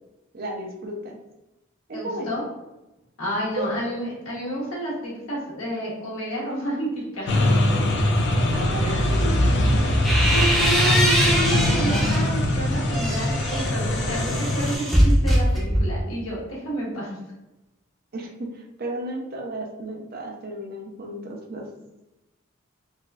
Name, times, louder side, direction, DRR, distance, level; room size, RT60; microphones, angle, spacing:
voice 1, 0.3-1.2 1.9-2.4 3.6-3.7 8.5-9.8 18.1-21.7, right 1 dB, 50° right, 0 dB, 0.6 m, -33 dB
voice 2, 1.9-2.4 3.2-7.3 8.8-9.1 10.3-17.2, right 1 dB, 80° left, -5 dB, 1.5 m, -30 dB
sound 1, 7.3-14.8, left 1 dB, 55° left, 0.5 m, -22 dB
sound 2, 9.6-12.3 12.8-16.1, equal, ahead, 0.6 m, -23 dB
4.0 x 2.5 x 2.4 m, 0.99 s
head